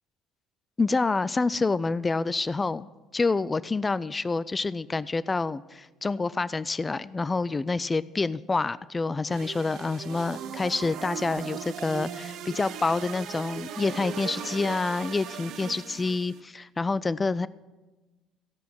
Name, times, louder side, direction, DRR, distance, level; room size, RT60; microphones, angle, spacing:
voice 1, 0.8-2.9 3.1-17.5, left 3 dB, 25° left, 17 dB, 0.4 m, -27 dB
sound 1, 9.3-16.4, right 8 dB, 60° right, 0.7 m, -38 dB
15.5 x 5.6 x 7.7 m, 1.2 s
hypercardioid pair, 60°, 0 cm